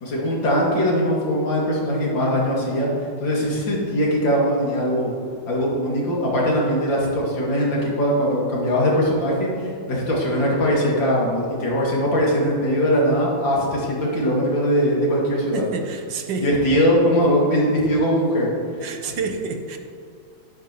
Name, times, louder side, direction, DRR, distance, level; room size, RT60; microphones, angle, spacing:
voice 1, 0.0-2.9 3.2-5.1 5.5-15.6 16.4-18.5 18.8-18.9, equal, 70° left, -4 dB, 3.0 m, -21 dB
voice 2, 15.5-16.5 18.8-19.8, right 4 dB, 70° right, 5 dB, 1.5 m, -28 dB
12.0 x 11.0 x 3.0 m, 2.4 s
omnidirectional pair, 2.1 m